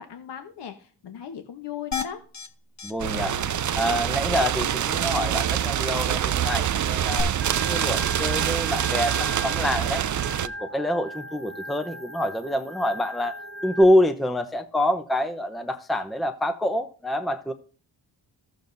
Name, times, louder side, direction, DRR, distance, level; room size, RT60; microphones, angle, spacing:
voice 1, 0.0-2.2 7.7-7.8, left 9 dB, 65° left, 1.1 m, -38 dB
sound 1, 1.9-2.5 2.8-2.9 3.2-3.3 3.7-3.8 7.2-7.3, left 5 dB, 40° left, 1.1 m, -31 dB
voice 2, 2.8-3.4 3.8-10.0 10.4-17.5, left 1 dB, ahead, 0.7 m, -26 dB
sound 2, 3.0-10.5, right 10 dB, 45° right, 0.5 m, -25 dB
Organ, 7.4-13.8, equal, 30° right, 1.2 m, -39 dB
14.5 x 7.0 x 2.6 m
cardioid pair, 75°, 45 cm